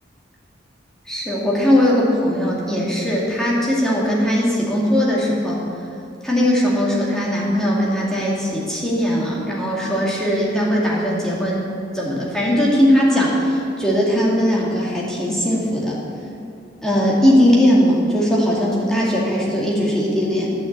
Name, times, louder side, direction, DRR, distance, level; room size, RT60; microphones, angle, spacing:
voice 1, 1.1-5.6 6.2-11.7 11.9-16.0 16.8-20.5, equal, 5° left, -5 dB, 2.1 m, -19 dB
11.5 x 6.3 x 8.0 m, 2.6 s
head